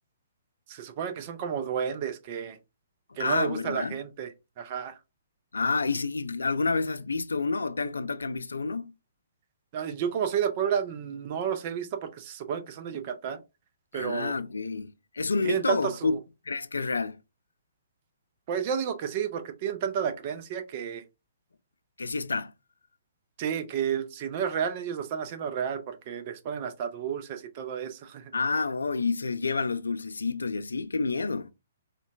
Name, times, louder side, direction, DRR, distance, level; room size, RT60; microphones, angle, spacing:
voice 1, 0.7-2.6 3.2-5.0 9.7-13.4 13.9-14.4 15.4-16.2 18.5-21.0 23.4-28.3, right 8 dB, 40° right, 0.5 m, -31 dB
voice 2, 3.1-4.0 5.5-8.9 13.9-16.2 16.5-17.2 22.0-22.5 28.3-31.5, left 4 dB, 80° left, 0.3 m, -29 dB
3.8 x 2.2 x 2.3 m
figure-of-eight pair, 130°, 0 cm